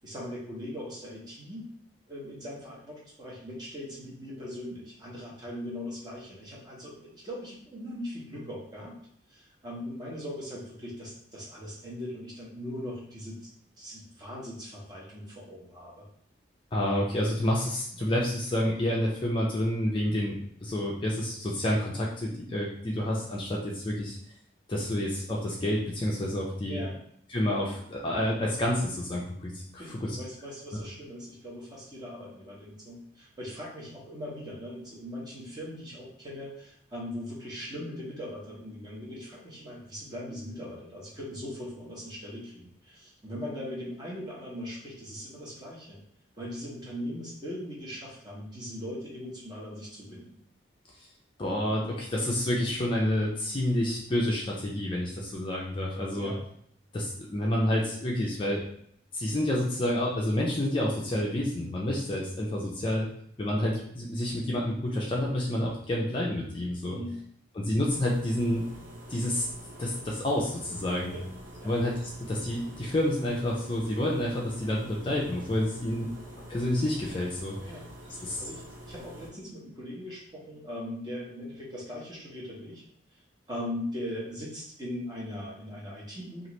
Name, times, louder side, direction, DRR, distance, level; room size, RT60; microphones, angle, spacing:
voice 1, 0.0-1.6 2.1-8.9 9.3-13.5 13.8-16.1 26.7-27.0 29.8-46.0 46.4-50.4 56.2-56.4 66.8-67.2 71.1-71.2 71.6-71.7 77.6-82.8 83.5-86.5, left 1 dB, 20° right, -5 dB, 0.9 m, -40 dB
voice 2, 16.7-20.4 20.6-24.2 24.7-26.8 27.3-30.2 51.4-56.3 56.9-58.6 59.1-63.1 63.4-67.0 67.5-68.6 69.1-69.5 69.8-71.1 71.6-71.9 72.2-76.1 76.5-77.5 78.2-78.4, left 1 dB, 25° left, -3 dB, 0.4 m, -29 dB
sound 1, 67.8-79.3, equal, 70° right, 0.8 m, -46 dB
3.0 x 2.4 x 3.0 m, 0.66 s
head